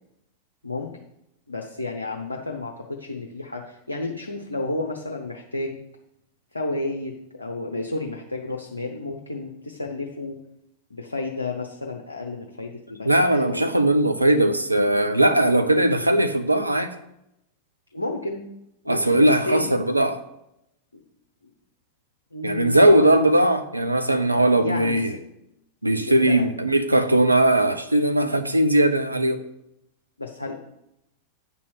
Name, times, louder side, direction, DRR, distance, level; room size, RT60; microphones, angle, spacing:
voice 1, 1.5-5.8 6.5-10.4 10.9-13.7 17.9-18.5 18.8-19.7 20.9-21.0 22.3-23.2 24.6-25.0 25.9-26.4 28.1-28.3 30.2-30.6, left 2 dB, 80° left, 0.8 m, -31 dB
voice 2, 13.0-16.9 18.9-20.2 22.4-25.1 25.8-29.4, right 1 dB, 85° right, 0.6 m, -19 dB
9.0 x 4.2 x 6.3 m
figure-of-eight pair, 90°, 0 cm